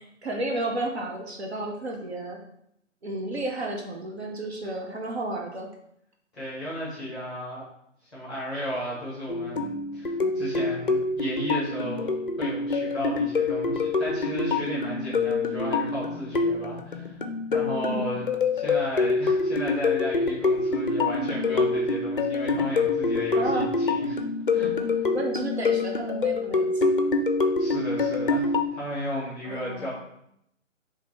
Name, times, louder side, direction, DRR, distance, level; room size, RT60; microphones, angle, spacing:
voice 1, 0.2-2.4 3.0-5.7 17.7-18.2 23.4-23.7 25.1-27.0 29.4-29.9, right 2 dB, 55° right, 1 dB, 0.7 m, -32 dB
voice 2, 6.4-7.6 8.1-12.1 12.4-17.2 17.5-18.3 18.5-24.2 24.5-25.1 27.6-29.9, equal, ahead, -7 dB, 1.0 m, -34 dB
sound 1, 9.3-28.7, left 3 dB, 45° left, 0.4 m, -26 dB
3.9 x 2.8 x 3.0 m, 0.76 s
figure-of-eight pair, 150°, 39 cm